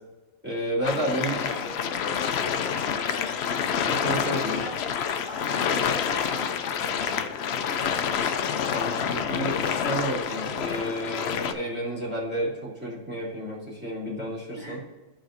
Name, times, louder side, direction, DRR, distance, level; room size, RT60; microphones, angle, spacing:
voice 1, 0.4-1.4 2.4-2.7 3.9-4.6 8.7-14.8, right 1 dB, 10° right, -7 dB, 2.5 m, -31 dB
sound 1, 0.8-11.5, left 7 dB, 60° left, 0.8 m, -28 dB
voice 2, 0.9-1.8 3.1-3.4 4.3-8.5 14.6-14.8, equal, 35° left, -5 dB, 1.9 m, -43 dB
14.5 x 5.0 x 2.6 m, 1.2 s
omnidirectional pair, 1.4 m